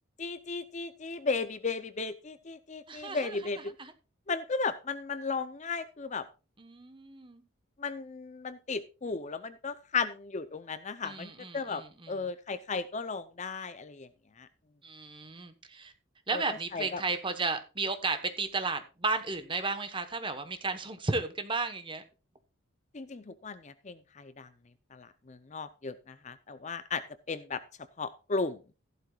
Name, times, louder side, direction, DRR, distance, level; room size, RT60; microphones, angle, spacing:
voice 1, 0.2-3.7 4.3-6.2 7.8-14.1 14.4-14.5 16.3-17.0 22.9-24.5 24.9-27.6 28.0-28.6, left 4 dB, 35° left, 0.6 m, -35 dB
voice 2, 2.9-3.4 3.8-3.9 6.6-7.4 11.0-12.2 14.8-15.9 16.3-22.0, right 3 dB, 25° right, 1.1 m, -34 dB
14.5 x 12.0 x 2.4 m
head